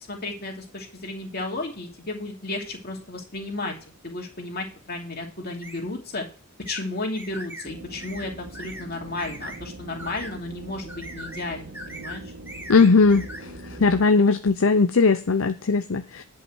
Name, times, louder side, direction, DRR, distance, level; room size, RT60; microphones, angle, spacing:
voice 1, 0.1-3.7 4.0-6.2 6.7-12.2, left 2 dB, 45° left, 1 dB, 2.7 m, -33 dB
sound 1, 5.6-5.8 6.7-6.8 7.2-7.7 8.0-8.3 8.5-8.9 9.2-9.6 10.0-10.3 10.9-11.5 11.7-12.2 12.5-13.4, equal, 10° right, 2.0 m, -39 dB
sound 2, 7.6-14.1, right 1 dB, 60° right, 1.3 m, -42 dB
voice 2, 12.7-16.2, left 4 dB, 65° left, 9 dB, 0.6 m, -19 dB
10.5 x 5.6 x 6.2 m, 0.37 s
head